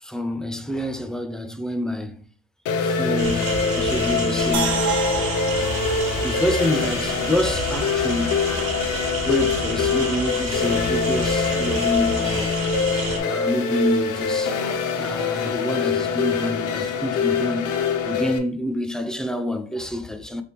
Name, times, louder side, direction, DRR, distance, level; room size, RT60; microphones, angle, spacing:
voice 1, 0.0-2.2 2.8-4.9 6.1-8.3 9.3-20.4, left 1 dB, ahead, 0.4 m, -27 dB
sound 1, 2.7-18.4, left 5 dB, 85° left, 0.6 m, -24 dB
sound 2, 3.2-13.2, right 3 dB, 85° right, 1.1 m, -30 dB
sound 3, 4.5-7.7 8.1-8.2, right 8 dB, 70° right, 0.8 m, -31 dB
3.3 x 3.3 x 2.9 m
cardioid pair, 90°, 30 cm